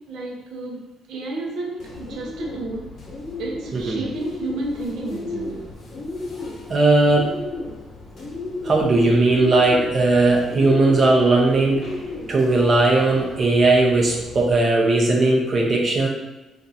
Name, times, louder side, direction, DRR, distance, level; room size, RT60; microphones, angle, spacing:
voice 1, 0.0-3.0 3.4-5.7, right 2 dB, 80° right, 0.7 m, -31 dB
Bird, 1.8-14.5, left 2 dB, 55° left, 1.0 m, -35 dB
voice 2, 3.7-4.0 6.7-7.3 8.6-11.9 12.3-16.1, right 2 dB, 45° right, 0.7 m, -18 dB
2.6 x 2.5 x 4.1 m
cardioid pair, 90°, 0 cm